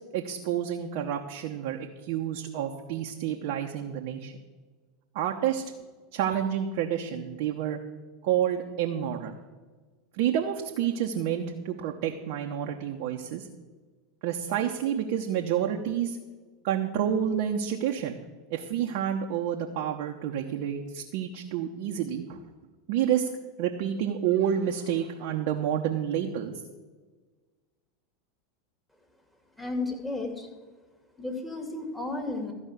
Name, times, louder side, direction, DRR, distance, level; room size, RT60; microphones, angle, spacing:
voice 1, 0.1-4.3 5.1-5.6 6.1-7.8 8.2-9.4 10.1-13.5 14.2-16.2 16.6-18.2 18.5-22.4 22.9-23.3 23.6-26.5, right 9 dB, 60° right, 1 dB, 1.0 m, -29 dB
voice 2, 29.6-30.5 31.2-32.5, left 2 dB, 5° left, 2 dB, 2.6 m, -33 dB
14.0 x 5.4 x 8.4 m, 1.3 s
hypercardioid pair, 85°, 0 cm